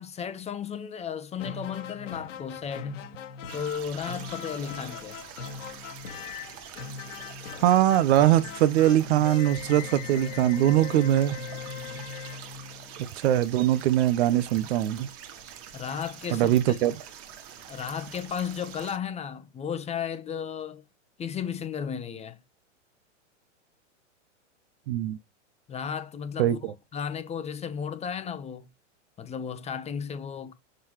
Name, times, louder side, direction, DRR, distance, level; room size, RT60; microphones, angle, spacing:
voice 1, 0.0-3.0 3.5-5.2 15.7-16.8 17.7-20.8 21.2-22.4 25.7-26.6 26.9-28.7 29.2-30.5, left 7 dB, 15° left, 1.0 m, -34 dB
sound 1, 1.4-13.2, left 6 dB, 75° left, 1.9 m, -40 dB
sound 2, 3.5-19.0, right 9 dB, 40° right, 1.6 m, -45 dB
voice 2, 7.6-11.4 13.2-15.1 16.3-16.9 24.9-25.2 26.4-26.7, right 12 dB, 60° right, 0.9 m, -22 dB
6.4 x 5.7 x 3.1 m
hypercardioid pair, 130°, 37 cm